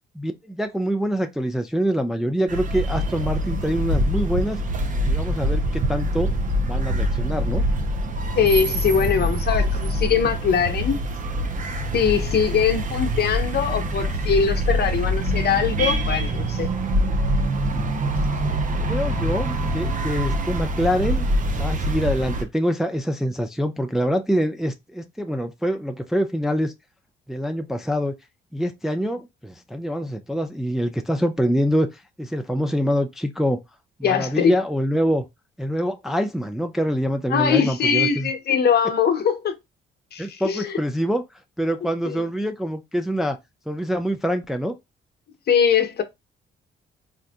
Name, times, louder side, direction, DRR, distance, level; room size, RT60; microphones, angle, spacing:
voice 1, 0.2-4.6 5.0-6.3 6.6-7.6 18.8-21.3 21.5-26.7 27.3-28.1 28.5-33.6 34.0-35.2 35.6-38.3 40.2-41.2 41.6-43.4 43.7-44.8, equal, ahead, 0.4 m, -25 dB
sound 1, 2.5-22.4, equal, 40° right, 0.7 m, -24 dB
voice 2, 8.3-11.0 11.9-16.7 34.0-34.5 37.3-39.5 40.1-40.8 42.1-42.2 45.5-46.0, left 7 dB, 55° left, 0.8 m, -21 dB
3.8 x 2.5 x 2.3 m
cardioid pair, 90°, 20 cm